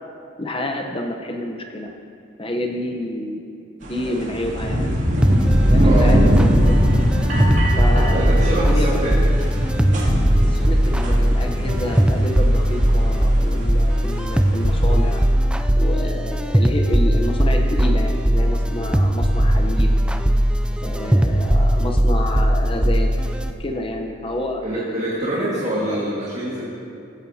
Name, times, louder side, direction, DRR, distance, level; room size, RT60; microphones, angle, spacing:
voice 1, 0.4-2.0 2.4-3.4 3.8-4.9 5.6-6.8 7.7-9.0 10.4-15.2 15.8-19.9 20.8-23.1 23.6-26.0, left 1 dB, 25° left, 2 dB, 0.9 m, -29 dB
sound 1, 3.8-15.3, equal, 70° right, 2.7 m, -22 dB
sound 2, 5.2-23.5, equal, 5° right, 0.4 m, -18 dB
voice 2, 8.0-9.2 24.6-26.6, right 1 dB, 35° right, -7 dB, 1.9 m, -25 dB
16.5 x 15.5 x 2.8 m, 2.6 s
head